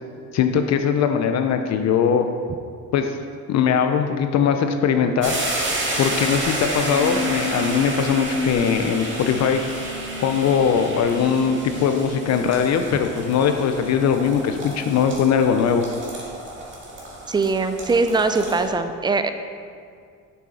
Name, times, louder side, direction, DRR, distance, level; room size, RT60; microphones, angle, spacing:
voice 1, 0.3-2.3 2.9-3.2 3.5-5.4 6.0-9.9 10.2-15.8, left 7 dB, 60° left, 6 dB, 0.5 m, -20 dB
sound 1, 5.2-18.7, right 2 dB, 40° right, 1.8 m, -31 dB
sound 2, 6.9-13.6, left 1 dB, 30° left, 1.9 m, -32 dB
voice 2, 17.3-19.3, right 3 dB, 15° right, 9 dB, 0.3 m, -21 dB
6.8 x 6.4 x 4.1 m, 2.2 s
cardioid pair, 120°, 31 cm